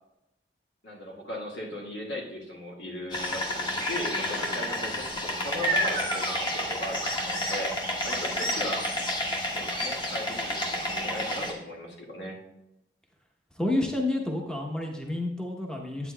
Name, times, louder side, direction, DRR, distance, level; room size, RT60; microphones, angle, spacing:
voice 1, 0.8-7.8 8.0-8.9 9.5-12.4, left 1 dB, 85° left, -2 dB, 1.7 m, -37 dB
sound 1, 3.1-11.5, equal, 25° left, 1.1 m, -30 dB
voice 2, 13.6-16.1, left 1 dB, 5° left, 1 dB, 0.8 m, -29 dB
9.1 x 8.7 x 2.2 m, 0.89 s
head